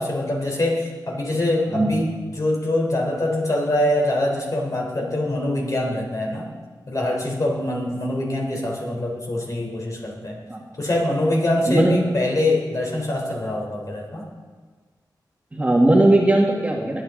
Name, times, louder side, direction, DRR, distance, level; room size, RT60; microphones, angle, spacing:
voice 1, 0.0-6.5 6.9-10.4 10.8-14.3, left 1 dB, 45° left, -1 dB, 3.8 m, -24 dB
voice 2, 11.7-12.0 15.5-17.0, right 1 dB, 20° right, -1 dB, 1.9 m, -18 dB
21.0 x 9.4 x 3.9 m, 1.4 s
wide cardioid pair, 80°, 8 cm